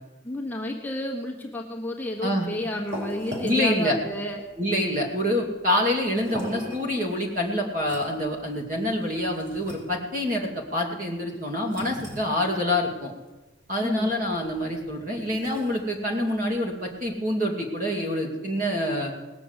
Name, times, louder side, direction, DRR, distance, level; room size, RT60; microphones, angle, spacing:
voice 1, 0.2-4.4 13.8-14.2, left 1 dB, 10° left, 0 dB, 1.2 m, -31 dB
sound 1, 2.2-17.1, equal, 80° right, 4.6 m, -43 dB
voice 2, 3.4-4.0 4.6-13.1 13.7-19.1, left 1 dB, 40° right, 1 dB, 2.5 m, -26 dB
19.0 x 6.9 x 8.1 m, 1.2 s
head